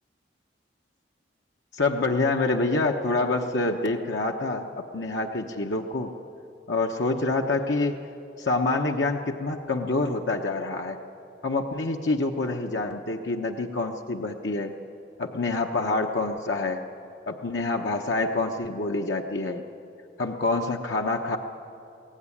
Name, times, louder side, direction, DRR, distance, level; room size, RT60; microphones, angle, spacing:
voice 1, 1.7-6.1 6.7-8.0 8.4-11.0 11.4-14.7 15.2-16.8 17.3-19.6 20.2-21.4, left 3 dB, 80° left, 2 dB, 1.0 m, -26 dB
23.0 x 16.0 x 9.9 m, 2.8 s
head